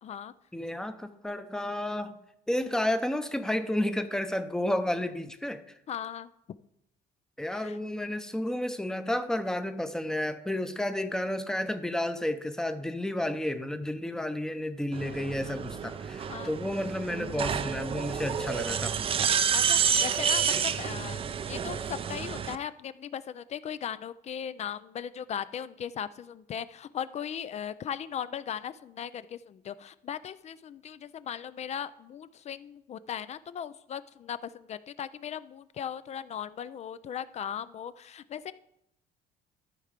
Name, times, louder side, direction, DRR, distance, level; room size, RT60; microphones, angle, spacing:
voice 1, 0.0-0.3 5.9-6.3 7.5-7.8 16.3-16.5 19.5-38.5, left 8 dB, 40° left, 15 dB, 0.4 m, -38 dB
voice 2, 0.5-2.1 2.5-5.6 7.4-18.9, left 1 dB, 5° left, 9 dB, 0.7 m, -31 dB
sound 1, 14.9-22.5, right 7 dB, 35° right, 0.4 m, -29 dB
13.0 x 4.5 x 5.1 m, 0.79 s
cardioid pair, 110°, 17 cm